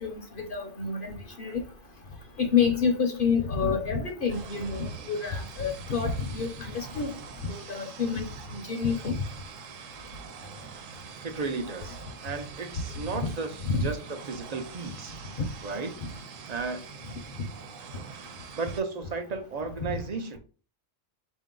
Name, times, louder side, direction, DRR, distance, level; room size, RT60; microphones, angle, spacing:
voice 1, 0.0-1.1 1.4-1.6 2.4-7.1 7.4-8.2 8.5-9.2 13.6-13.9, left 5 dB, 50° left, 0.8 m, -28 dB
sound 1, 4.3-18.8, right 6 dB, 85° right, 1.0 m, -45 dB
voice 2, 11.2-13.5 13.8-15.1 15.6-15.9 16.5-16.8 18.5-20.4, right 4 dB, 45° right, 0.5 m, -34 dB
4.9 x 2.7 x 3.7 m
omnidirectional pair, 1.3 m